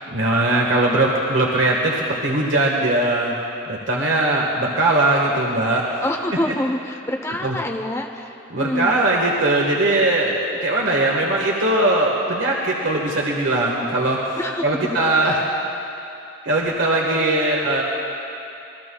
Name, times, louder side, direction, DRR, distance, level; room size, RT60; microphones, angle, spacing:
voice 1, 0.1-3.3 3.7-6.0 7.4-7.5 8.5-14.3 14.6-15.4 16.4-17.8, right 2 dB, 65° right, -2 dB, 1.5 m, -20 dB
voice 2, 6.0-9.0 14.4-15.4, left 1 dB, 15° left, 2 dB, 0.7 m, -27 dB
27.0 x 21.0 x 2.3 m, 2.8 s
head